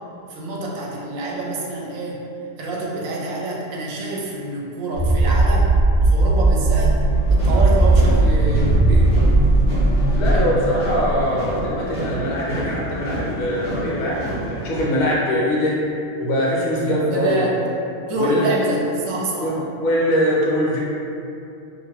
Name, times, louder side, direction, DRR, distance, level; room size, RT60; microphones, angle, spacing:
voice 1, 0.3-2.2 2.6-6.9 7.3-9.2 16.8-17.5 18.1-19.6, right 2 dB, 70° right, -3 dB, 0.9 m, -27 dB
sound 1, 4.9-11.2, right 2 dB, 20° left, 1.1 m, -17 dB
sound 2, 7.1-14.8, right 1 dB, 45° left, 1.0 m, -29 dB
voice 2, 10.1-15.7 16.2-17.5 18.1-18.5 19.4-19.5 19.8-20.8, left 1 dB, 65° left, -5 dB, 1.1 m, -22 dB
3.0 x 2.4 x 2.8 m, 2.6 s
omnidirectional pair, 1.6 m